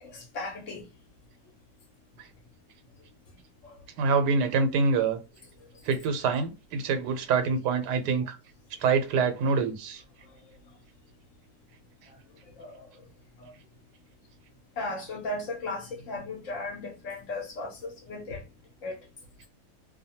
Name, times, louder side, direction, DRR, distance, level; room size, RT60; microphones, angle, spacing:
voice 1, 0.1-0.8 12.6-12.9 13.4-13.5 14.8-18.4 18.8-18.9, left 2 dB, 60° left, 0.9 m, -36 dB
voice 2, 4.0-5.2 5.9-8.4 8.8-10.0, right 4 dB, 90° right, 1.2 m, -25 dB
2.7 x 2.2 x 2.7 m
omnidirectional pair, 1.7 m